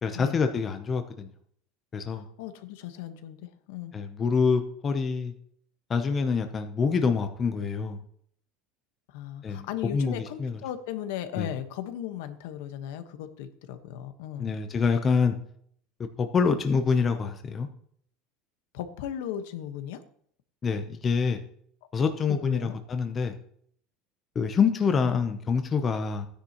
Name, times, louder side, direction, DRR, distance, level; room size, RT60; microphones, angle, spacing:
voice 1, 0.0-1.3 1.9-2.2 3.9-5.3 5.9-8.0 9.4-10.6 11.4-11.5 14.4-15.4 16.2-17.7 20.6-21.4 21.9-23.3 24.4-26.3, left 5 dB, 20° left, 6 dB, 0.7 m, -26 dB
voice 2, 2.1-3.9 9.1-14.6 18.7-20.0 22.3-22.8 25.0-25.2, left 10 dB, 75° left, 8 dB, 1.2 m, -36 dB
15.5 x 9.9 x 3.0 m, 0.63 s
cardioid pair, 180°, 0 cm